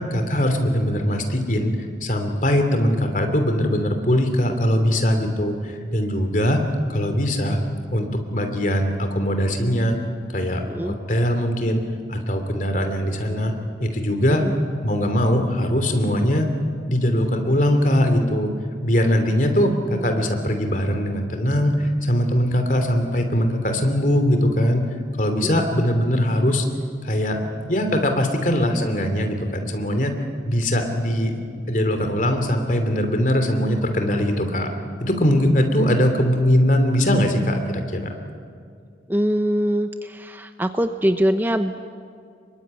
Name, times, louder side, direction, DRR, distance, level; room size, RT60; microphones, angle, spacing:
voice 1, 0.1-6.6 6.9-7.6 7.9-10.0 10.3-14.5 14.8-16.5 16.9-18.5 18.8-24.8 25.2-26.7 27.0-27.4 27.7-30.2 30.4-34.7 35.0-38.1, equal, 45° left, 6 dB, 3.0 m, -21 dB
voice 2, 39.1-41.8, equal, 10° right, 8 dB, 0.7 m, -23 dB
26.5 x 23.0 x 9.7 m, 2.2 s
head